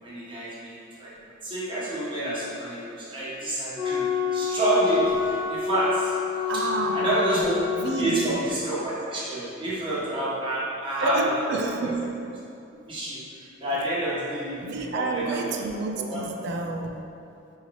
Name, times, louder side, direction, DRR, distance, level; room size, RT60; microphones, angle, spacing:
voice 1, 0.0-1.1 1.4-6.2 6.5-6.6 6.9-7.6 8.0-11.9 12.9-15.6 16.0-16.2, right 1 dB, 25° right, -9 dB, 1.2 m, -29 dB
Wind instrument woodwind instrument, 3.8-8.1, left 6 dB, 30° left, 0.5 m, -27 dB
voice 2, 6.5-7.1 7.8-8.3 11.0-12.1 14.6-17.1, right 3 dB, 60° right, 3 dB, 0.4 m, -29 dB
5.5 x 2.7 x 3.0 m, 2.6 s
head